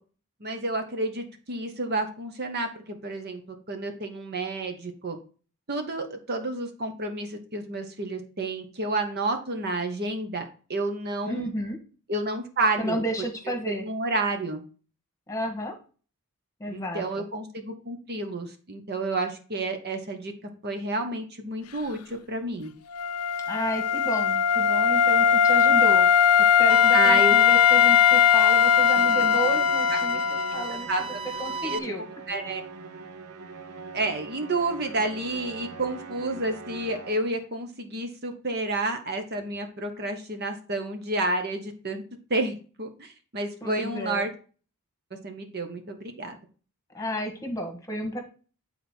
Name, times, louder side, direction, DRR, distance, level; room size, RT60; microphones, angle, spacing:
voice 1, 0.4-3.4 3.7-5.2 5.7-11.5 12.1-13.0 13.7-14.6 16.7-20.3 20.6-22.7 26.9-27.3 30.9-31.2 31.6-31.8 32.3-32.7 33.9-42.0 42.3-44.3 45.2-46.4, right 2 dB, 45° right, 5 dB, 1.1 m, -30 dB
voice 2, 11.2-11.8 12.8-13.8 15.3-15.7 16.6-17.0 23.5-26.1 26.4-30.9 31.4-32.0 43.6-44.3 46.9-48.2, equal, 15° left, 3 dB, 1.5 m, -32 dB
Wind instrument woodwind instrument, 22.9-30.7, left 8 dB, 80° left, 0.5 m, -20 dB
sound 1, 26.7-31.8, right 4 dB, 25° right, 0.5 m, -34 dB
Musical instrument, 29.0-37.5, right 4 dB, 75° right, 0.8 m, -43 dB
9.1 x 4.2 x 4.4 m, 0.38 s
head